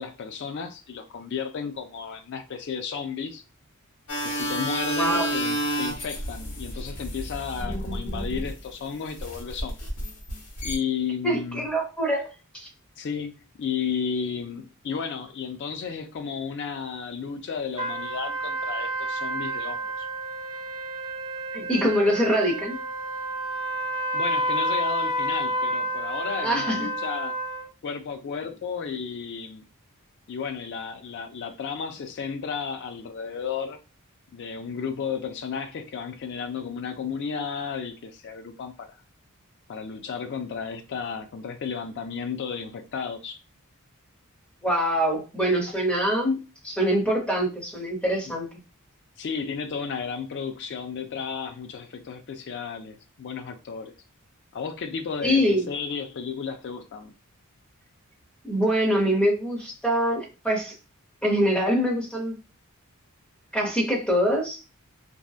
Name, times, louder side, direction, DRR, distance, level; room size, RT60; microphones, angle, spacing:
voice 1, 0.0-3.4 4.2-9.8 10.6-11.7 13.0-20.1 24.1-27.4 27.8-29.6 30.3-33.8 34.3-39.0 39.7-43.4 49.2-53.9 54.5-57.1, left 6 dB, 50° left, 0.4 m, -33 dB
sound 1, 4.1-8.7 9.2-10.8, right 1 dB, 80° left, 1.0 m, -30 dB
voice 2, 5.0-5.3 11.2-12.3 12.5-12.7 21.5-22.8 26.4-26.8 44.6-46.4 46.6-48.5 55.2-55.7 58.4-60.7 61.2-62.4 63.5-64.6, equal, 5° left, 0.8 m, -24 dB
sound 2, 17.8-27.7, right 1 dB, 20° right, 0.6 m, -30 dB
2.7 x 2.1 x 2.3 m
head